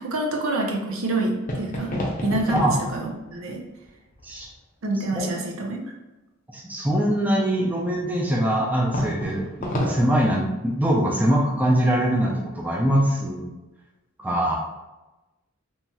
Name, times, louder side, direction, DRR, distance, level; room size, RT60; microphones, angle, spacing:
voice 1, 0.0-1.9 2.2-3.6 4.8-5.8, right 2 dB, 75° right, 1 dB, 0.6 m, -27 dB
sound 1, 1.4-3.4 3.8-4.6 8.9-10.0, equal, 40° left, 0.6 m, -30 dB
voice 2, 6.5-13.5 14.2-14.6, right 1 dB, 10° right, -2 dB, 0.3 m, -23 dB
3.0 x 2.8 x 2.2 m, 1.0 s
head